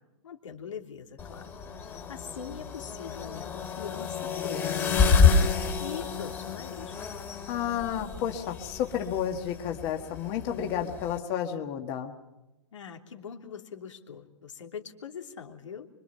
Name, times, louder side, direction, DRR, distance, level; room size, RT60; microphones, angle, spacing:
voice 1, 0.2-1.5 1.8-7.1 12.7-15.9, left 7 dB, 90° left, 3 dB, 3.1 m, -42 dB
sound 1, 1.2-11.2, left 5 dB, 15° left, 2.3 m, -29 dB
voice 2, 7.5-12.1, left 9 dB, 30° left, 4 dB, 1.6 m, -31 dB
25.0 x 24.0 x 5.6 m, 1.0 s
hypercardioid pair, 155°, 15 cm